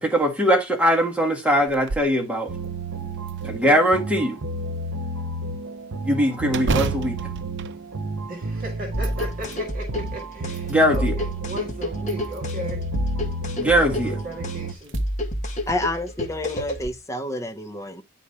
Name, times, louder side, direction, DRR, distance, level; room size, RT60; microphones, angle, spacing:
voice 1, 0.0-2.5 3.4-4.4 6.0-7.2 10.7-11.1 13.6-14.2, equal, 5° right, 1.7 m, -21 dB
sound 1, 1.7-2.2 2.6-2.7 3.3-4.1 6.5-8.5 8.9-9.6 10.3-11.1 12.0-12.7 14.1-14.2 14.8-15.0 15.5-15.6 16.6-16.9, right 4 dB, 60° right, 0.6 m, -31 dB
sound 2, 2.5-14.7, right 2 dB, 90° right, 0.8 m, -32 dB
voice 2, 8.3-12.8 13.6-15.0, right 1 dB, 45° right, 2.0 m, -37 dB
sound 3, 8.9-16.9, equal, 35° left, 1.6 m, -29 dB
voice 3, 15.7-18.0, left 1 dB, 15° left, 0.9 m, -29 dB
9.9 x 4.2 x 4.8 m
head